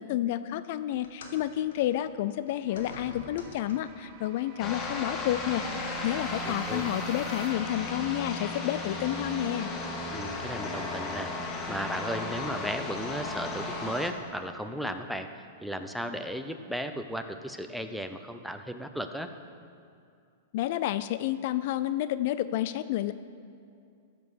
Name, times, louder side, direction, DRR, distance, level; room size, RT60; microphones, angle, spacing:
voice 1, 0.0-9.7 20.5-23.1, left 13 dB, 55° left, 14 dB, 0.4 m, -30 dB
sound 1, 1.0-4.1 5.1-5.2 6.1-6.2, left 3 dB, 75° left, 1.8 m, -48 dB
sound 2, 2.7-7.8, right 5 dB, 45° right, 1.2 m, -51 dB
sound 3, 4.6-14.1, left 2 dB, 25° left, 1.7 m, -35 dB
voice 2, 6.4-6.9 10.1-11.3 11.7-15.3 15.6-19.3, equal, ahead, 7 dB, 0.8 m, -35 dB
13.0 x 7.4 x 6.4 m, 2.4 s
hypercardioid pair, 120°, 0 cm